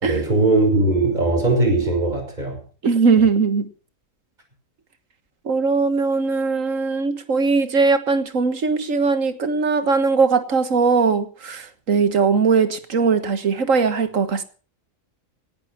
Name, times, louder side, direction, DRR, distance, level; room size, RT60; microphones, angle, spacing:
voice 1, 0.0-2.6, right 2 dB, 35° right, 6.5 m, -19 dB
voice 2, 2.8-3.7 5.5-14.4, right 4 dB, 75° right, 1.9 m, -20 dB
18.5 x 11.0 x 5.9 m
omnidirectional pair, 1.4 m